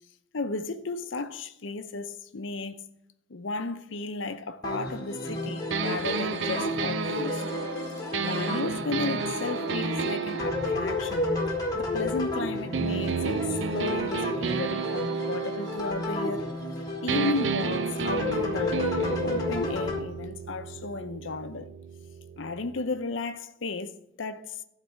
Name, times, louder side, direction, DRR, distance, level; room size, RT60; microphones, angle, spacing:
voice 1, 0.3-2.9 3.3-7.5 8.2-11.3 11.7-13.4 13.7-16.5 17.0-21.7 22.4-24.6, left 3 dB, 80° left, 0.7 m, -34 dB
sound 1, 4.6-20.0, left 2 dB, 20° left, 1.7 m, -32 dB
sound 2, 5.7-12.2 12.7-16.8 17.1-22.8, right 5 dB, 75° right, 0.5 m, -32 dB
12.0 x 4.1 x 7.6 m
head